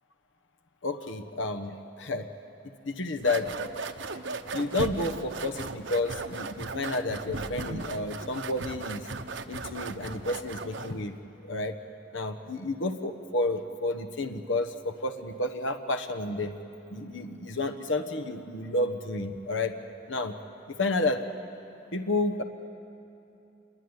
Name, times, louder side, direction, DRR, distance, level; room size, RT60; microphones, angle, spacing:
voice 1, 0.8-2.3 2.8-3.9 4.5-9.1 9.5-11.1 11.4-11.8 12.1-16.6 16.9-19.7 20.1-20.3 20.7-21.2 21.9-22.4, left 2 dB, 85° left, 6 dB, 1.2 m, -31 dB
sound 1, 3.2-11.0, right 3 dB, 80° right, 1.1 m, -37 dB
27.0 x 21.5 x 9.8 m, 2.8 s
head